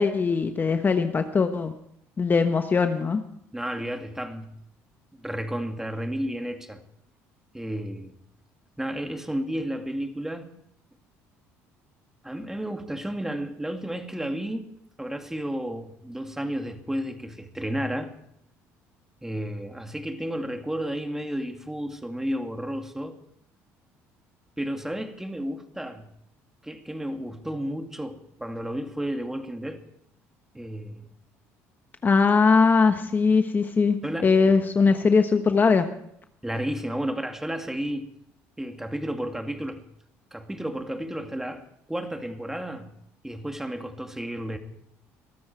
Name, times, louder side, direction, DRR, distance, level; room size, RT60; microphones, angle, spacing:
voice 1, 0.0-1.7 2.2-3.2 32.0-34.0 34.2-35.8, left 4 dB, 30° left, 7 dB, 1.2 m, -20 dB
voice 2, 3.5-4.6 5.2-6.8 7.5-8.2 8.8-10.5 12.2-14.7 15.0-18.1 19.2-23.2 24.6-26.1 26.6-29.8 30.5-31.1 34.0-34.3 36.4-38.1 38.6-39.8 40.3-41.6 41.9-43.0 43.2-44.6, equal, 5° right, 5 dB, 2.4 m, -32 dB
22.0 x 13.5 x 4.6 m, 0.72 s
supercardioid pair, 80°, 6 cm